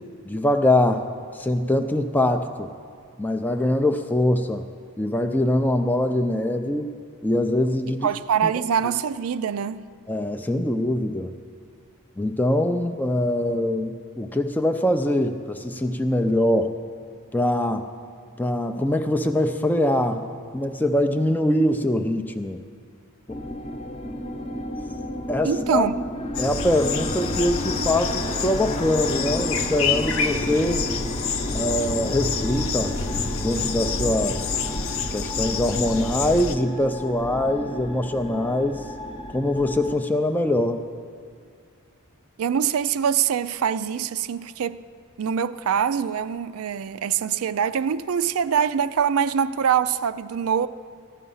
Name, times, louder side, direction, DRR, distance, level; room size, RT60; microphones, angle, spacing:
voice 1, 0.3-2.7 3.2-4.6 5.0-7.0 7.2-8.1 8.4-8.5 10.1-11.3 12.2-16.7 17.3-17.9 18.4-20.3 20.5-22.6 23.3-23.7 25.3-25.9 26.4-30.9 31.5-33.0 33.4-34.5 35.1-38.9 39.3-40.8, left 1 dB, 10° left, 0.4 m, -23 dB
voice 2, 8.0-9.9 25.4-26.0 42.4-44.8 45.2-50.7, right 7 dB, 65° right, 0.4 m, -24 dB
sound 1, 23.3-39.9, equal, 25° left, 0.8 m, -33 dB
sound 2, 26.3-36.6, left 5 dB, 60° left, 0.7 m, -28 dB
15.0 x 11.0 x 5.5 m
head